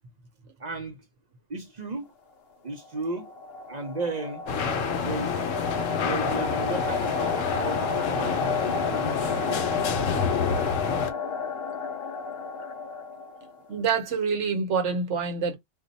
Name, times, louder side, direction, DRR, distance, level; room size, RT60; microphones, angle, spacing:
voice 1, 0.6-1.1 1.5-2.1 2.6-3.3 3.7-4.4 5.0-5.4 5.9-9.8, right 3 dB, 40° right, 0.7 m, -35 dB
sound 1, 2.8-13.7, left 5 dB, 55° left, 0.8 m, -32 dB
sound 2, 4.5-11.1, left 6 dB, 80° left, 1.0 m, -28 dB
voice 2, 13.7-15.5, right 5 dB, 70° right, 1.2 m, -26 dB
2.6 x 2.3 x 3.9 m
omnidirectional pair, 1.3 m